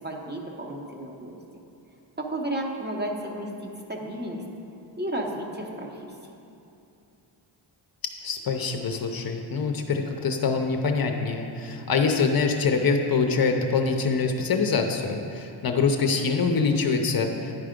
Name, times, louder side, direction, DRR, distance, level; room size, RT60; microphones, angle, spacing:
voice 1, 0.0-1.3 2.2-4.4 5.0-6.1, right 1 dB, 20° right, 0 dB, 0.9 m, -33 dB
voice 2, 8.2-17.5, left 4 dB, 50° left, 3 dB, 0.6 m, -24 dB
10.5 x 4.7 x 5.1 m, 2.7 s
wide cardioid pair, 110°, 47 cm